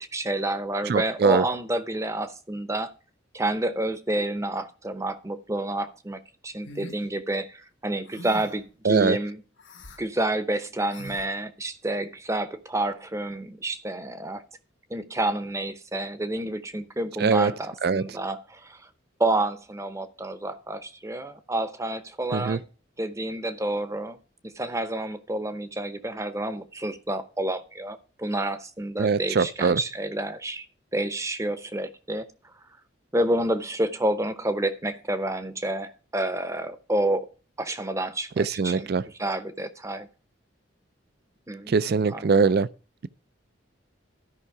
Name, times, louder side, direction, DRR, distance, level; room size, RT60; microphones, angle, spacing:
voice 1, 0.0-2.9 3.3-9.4 10.0-14.4 14.9-18.9 19.2-22.6 23.0-24.2 24.4-30.7 30.9-32.3 33.1-37.3 37.6-38.9 39.2-40.1 41.5-41.8 42.1-42.5, right 1 dB, 15° right, 0.7 m, -29 dB
voice 2, 0.9-1.4 8.8-9.2 17.2-17.5 17.8-18.0 22.3-22.6 29.0-29.8 38.4-39.0 41.7-42.7, right 5 dB, 55° right, 0.4 m, -22 dB
sound 1, 6.6-7.0 8.1-8.6 9.6-10.0 10.9-11.3, left 1 dB, 80° left, 1.7 m, -42 dB
13.0 x 5.6 x 4.7 m
head